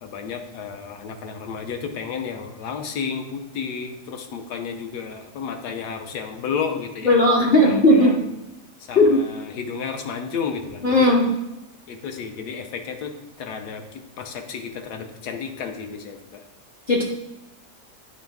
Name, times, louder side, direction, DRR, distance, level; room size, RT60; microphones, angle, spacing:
voice 1, 0.0-8.2 8.8-11.1 11.9-16.4, left 6 dB, 85° left, 5 dB, 1.3 m, -32 dB
voice 2, 7.0-8.2 9.0-9.2 10.8-11.3 16.9-17.0, left 1 dB, 55° left, -3 dB, 0.6 m, -16 dB
8.9 x 3.1 x 3.4 m, 0.96 s
omnidirectional pair, 1.7 m